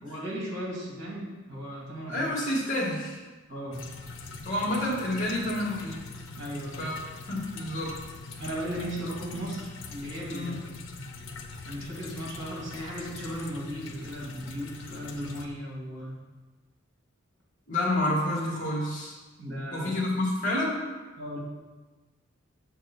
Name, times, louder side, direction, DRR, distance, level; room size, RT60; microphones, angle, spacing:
voice 1, 0.0-2.3 3.5-3.9 6.4-6.9 8.4-10.5 10.9-11.1 11.6-16.2 19.4-19.9 21.2-21.4, equal, 60° right, -3 dB, 2.5 m, -36 dB
voice 2, 2.1-3.2 4.4-6.0 6.8-6.9 7.3-8.0 10.3-10.6 17.7-19.1 19.7-20.8, left 1 dB, 40° left, -3 dB, 2.1 m, -29 dB
sound 1, 3.7-15.5, left 4 dB, 75° left, 0.8 m, -43 dB
6.6 x 4.6 x 6.2 m, 1.2 s
head